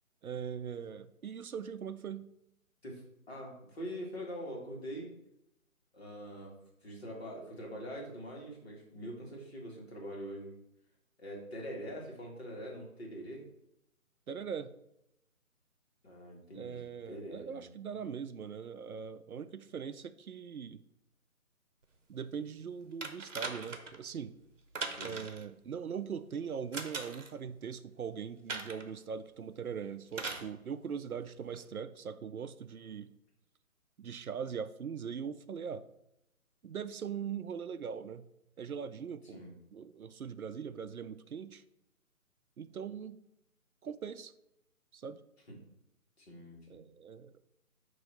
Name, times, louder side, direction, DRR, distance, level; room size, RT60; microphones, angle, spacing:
voice 1, 0.2-2.3 14.3-14.7 16.5-20.8 22.1-24.3 25.0-33.1 34.0-35.8 36.6-38.3 38.6-39.4 39.7-41.6 42.6-43.2 43.8-44.3 44.9-45.2 46.7-47.3, right 7 dB, 75° right, 13 dB, 0.5 m, -41 dB
voice 2, 2.8-5.1 5.9-6.6 6.8-10.5 11.2-13.5 16.0-17.7 24.9-25.2 39.2-39.5 46.2-46.8, equal, 45° left, -2 dB, 1.9 m, -44 dB
sound 1, 23.0-24.0 24.7-25.4 26.7-27.3 28.5-28.9 30.1-30.5 31.5-31.6, right 4 dB, 60° right, 0.9 m, -40 dB
9.1 x 3.1 x 4.3 m, 0.81 s
figure-of-eight pair, 150°, 43 cm